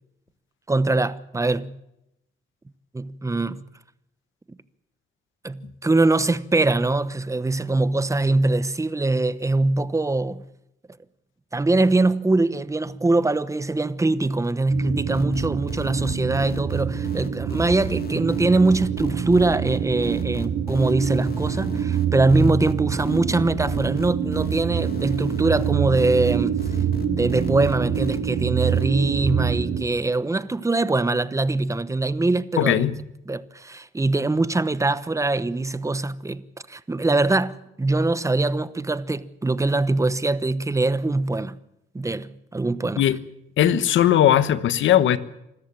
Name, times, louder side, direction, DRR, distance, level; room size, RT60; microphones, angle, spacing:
voice 1, 0.7-1.8 2.9-3.6 5.4-10.4 11.5-26.6 27.1-32.9 33.3-36.4 36.7-41.6 41.9-43.0, right 2 dB, 15° right, 1.0 m, -22 dB
sound 1, 14.7-29.8, right 8 dB, 60° right, 5.4 m, -26 dB
sound 2, 15.1-28.2 28.6-28.9, left 7 dB, 50° left, 2.5 m, -38 dB
voice 2, 32.6-33.0 43.0-43.2 43.6-45.2, left 11 dB, 75° left, 1.3 m, -18 dB
25.5 x 14.0 x 9.1 m
cardioid pair, 90°, 20 cm